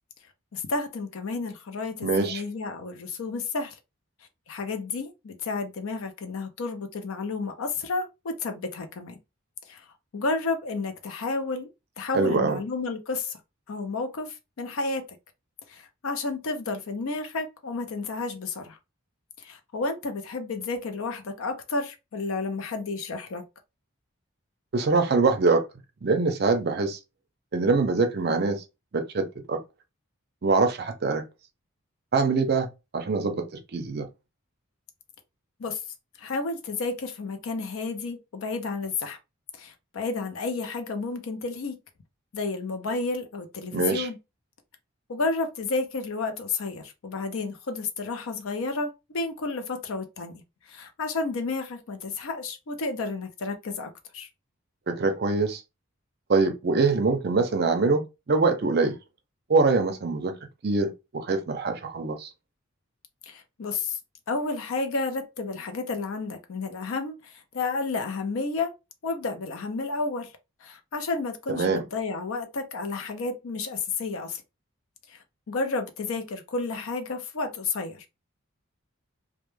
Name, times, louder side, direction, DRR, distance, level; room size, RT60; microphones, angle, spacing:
voice 1, 0.5-3.8 4.5-9.2 9.7-9.9 10.1-11.7 12.0-13.4 13.7-15.1 15.7-18.8 19.4-23.4 35.6-35.8 36.2-39.2 39.6-41.8 42.3-44.2 45.1-50.4 50.7-54.3 63.3-64.0 64.3-68.7 69.0-70.3 70.6-74.4 75.1-75.2 75.5-78.0, left 3 dB, 75° left, 0.5 m, -31 dB
voice 2, 2.0-2.4 12.1-12.6 24.7-25.6 26.0-27.0 27.5-28.6 28.9-29.6 30.4-31.2 32.1-32.7 32.9-33.4 33.7-34.1 43.7-44.1 54.9-55.6 56.3-59.0 59.5-60.3 60.6-62.3 71.5-71.8, right 3 dB, 45° right, 0.5 m, -24 dB
2.1 x 2.1 x 3.0 m
head